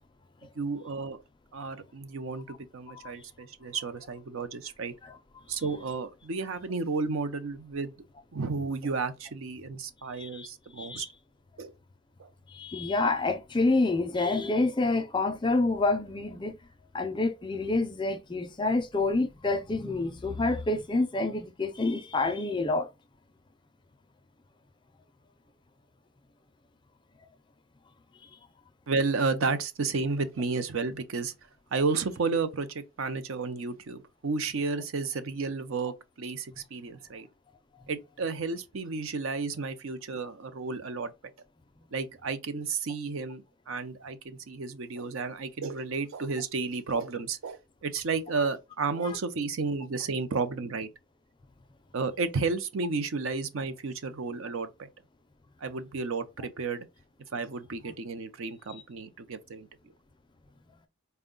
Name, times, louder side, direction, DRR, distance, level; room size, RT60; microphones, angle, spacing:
voice 1, 0.6-1.2 1.5-4.9 5.5-7.9 8.3-11.1 11.6-11.7 12.2-12.3 28.9-31.3 31.7-37.3 37.9-41.1 41.9-43.4 43.7-50.9 51.9-54.9 55.6-56.9 57.3-59.7, right 4 dB, 65° right, 0.5 m, -32 dB
voice 2, 10.2-10.5 10.8-11.1 12.5-16.6 16.9-22.9 49.0-49.2, left 2 dB, 20° left, 0.4 m, -28 dB
4.4 x 2.2 x 3.7 m
head